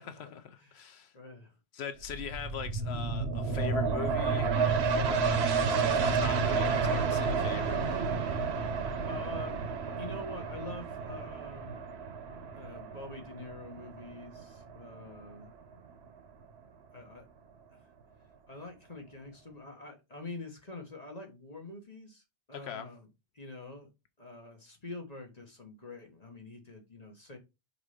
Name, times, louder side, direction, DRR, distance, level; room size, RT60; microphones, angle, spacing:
voice 1, 0.0-1.1 1.7-4.8 5.0-8.0 22.5-22.9, left 8 dB, 80° left, 0.9 m, -42 dB
voice 2, 0.6-1.5 9.1-9.6 10.0-11.8 12.5-15.5 16.9-17.3 17.7-17.9 18.5-23.1 23.3-23.9 24.2-27.4, left 2 dB, 40° left, 1.5 m, -46 dB
sound 1, 2.0-15.3 15.7-15.8, right 5 dB, 85° right, 1.1 m, -31 dB
5.0 x 4.1 x 4.9 m
omnidirectional pair, 1.1 m